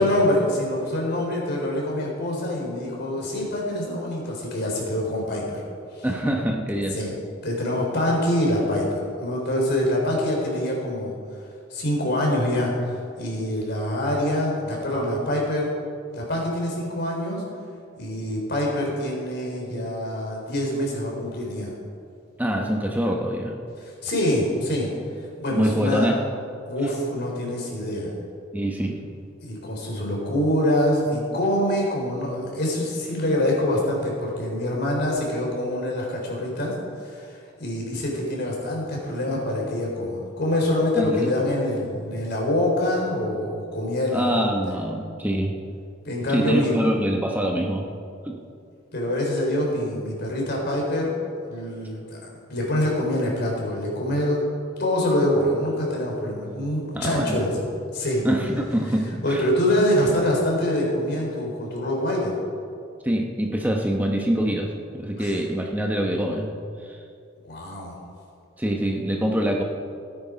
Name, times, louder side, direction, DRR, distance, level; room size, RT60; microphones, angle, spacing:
voice 1, 0.0-5.6 5.9-6.1 6.9-7.1 7.4-11.2 11.7-15.8 16.1-17.4 18.0-21.7 23.8-24.9 25.4-26.1 26.7-28.2 29.4-44.3 46.0-46.8 48.9-51.1 51.5-54.4 54.8-57.6 57.9-58.3 59.2-62.4 65.2-65.3 67.4-67.9, left 1 dB, 60° left, -2 dB, 3.9 m, -25 dB
voice 2, 6.0-7.0 22.4-23.6 25.5-26.1 28.5-29.0 40.9-41.3 44.1-45.5 46.3-47.9 48.2-48.4 56.9-57.4 58.2-59.4 63.0-66.6 66.8-67.0 68.6-69.6, right 1 dB, 10° right, 1 dB, 1.0 m, -25 dB
17.0 x 9.7 x 5.0 m, 2.4 s
head